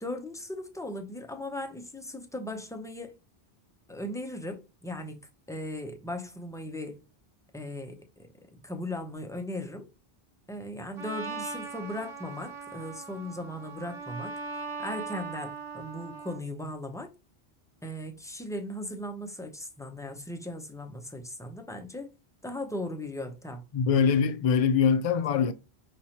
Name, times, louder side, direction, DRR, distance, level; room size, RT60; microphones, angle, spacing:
voice 1, 0.0-3.2 3.9-5.2 5.5-7.0 7.5-9.9 10.5-14.3 14.8-17.1 17.8-22.1 22.4-23.6, left 1 dB, 5° left, 0.6 m, -38 dB
Trumpet, 11.0-16.4, right 4 dB, 70° right, 1.6 m, -39 dB
voice 2, 23.7-25.5, left 6 dB, 50° left, 0.5 m, -23 dB
5.4 x 3.0 x 2.8 m
omnidirectional pair, 1.0 m